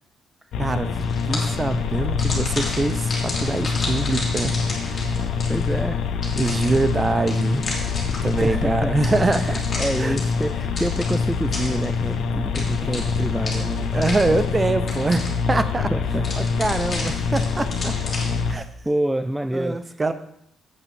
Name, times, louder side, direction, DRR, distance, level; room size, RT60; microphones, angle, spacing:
sound 1, 0.5-18.5, left 5 dB, 80° left, 1.0 m, -25 dB
voice 1, 0.6-4.6 4.9-5.2 6.4-7.7 8.2-9.6 10.0-10.2 13.9-15.9 16.4-17.9 18.5-18.6 19.5-20.1, right 2 dB, 25° right, 11 dB, 0.8 m, -24 dB
sound 2, 1.0-1.7 2.2-5.8 6.2-8.5 9.0-12.1 12.5-14.6 14.9-15.6 16.2-18.5, left 2 dB, 30° left, 3.1 m, -33 dB
voice 2, 5.5-6.0 8.4-9.0 9.4-14.0 15.9-16.3 17.0-17.2 18.8-19.8, right 1 dB, 5° right, 9 dB, 0.4 m, -27 dB
8.4 x 5.6 x 7.1 m, 0.74 s
cardioid pair, 90°, 0 cm